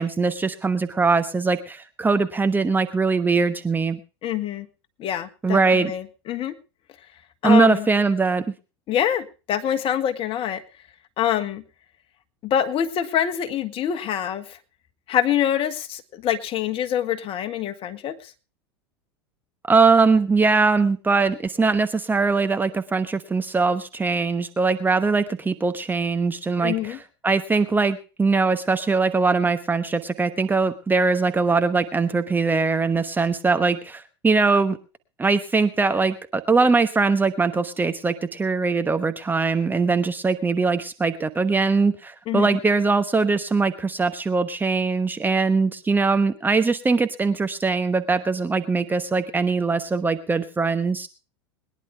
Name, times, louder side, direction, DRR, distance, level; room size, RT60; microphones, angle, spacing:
voice 1, 0.0-4.0 5.4-5.9 7.4-8.5 19.7-27.0 27.2-34.8 35.2-51.1, right 4 dB, 15° right, 10 dB, 1.1 m, -21 dB
voice 2, 4.2-4.7 5.0-6.6 7.4-7.9 8.9-10.6 11.2-11.6 12.4-14.6 15.1-18.3 26.6-27.0 42.3-42.6, left 10 dB, 40° left, 9 dB, 1.9 m, -25 dB
22.0 x 10.5 x 3.5 m, 0.33 s
hypercardioid pair, 95°, 14 cm